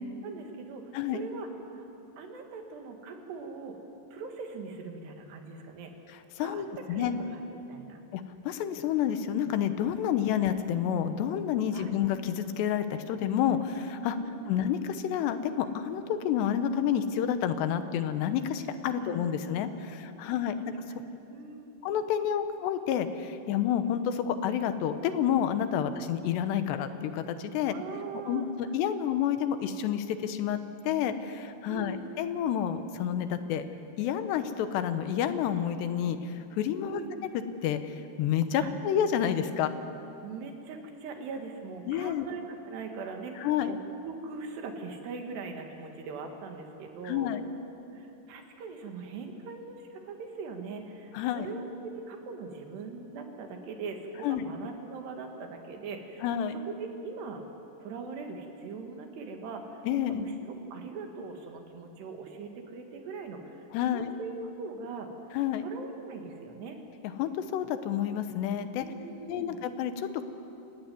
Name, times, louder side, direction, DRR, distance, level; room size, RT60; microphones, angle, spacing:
voice 1, 0.2-1.9 2.2-3.8 4.1-5.9 6.4-7.4 7.7-8.0 11.7-12.0 14.1-14.5 18.9-20.7 21.1-21.7 25.8-25.9 27.6-28.5 31.7-32.1 36.8-37.1 38.6-38.7 40.2-47.3 47.9-56.3 56.6-57.4 57.8-59.8 60.1-65.1 65.6-66.8 68.8-69.6, right 4 dB, 75° right, 4 dB, 4.0 m, -41 dB
voice 2, 6.4-7.1 8.1-14.2 14.5-20.7 21.8-27.7 28.3-30.6 30.8-33.6 34.0-37.0 37.6-39.7 41.9-42.3 43.4-43.7 47.0-47.4 51.1-51.5 54.2-54.4 56.2-56.6 59.8-60.3 63.7-64.1 65.3-65.6 67.2-68.9 69.3-70.2, left 9 dB, 80° left, 10 dB, 3.1 m, -29 dB
29.0 x 15.0 x 9.4 m, 2.8 s
omnidirectional pair, 5.0 m